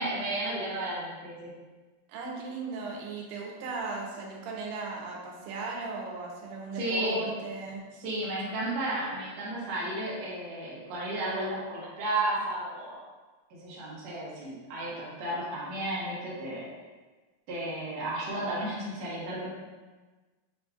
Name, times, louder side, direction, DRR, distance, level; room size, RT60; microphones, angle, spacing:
voice 1, 0.0-1.5 6.7-7.3 8.0-13.0 13.5-16.7 17.5-19.5, right 1 dB, 70° right, -7 dB, 1.7 m, -33 dB
voice 2, 2.1-7.8, right 4 dB, 85° right, -1 dB, 2.7 m, -37 dB
6.9 x 2.6 x 2.3 m, 1.3 s
omnidirectional pair, 4.7 m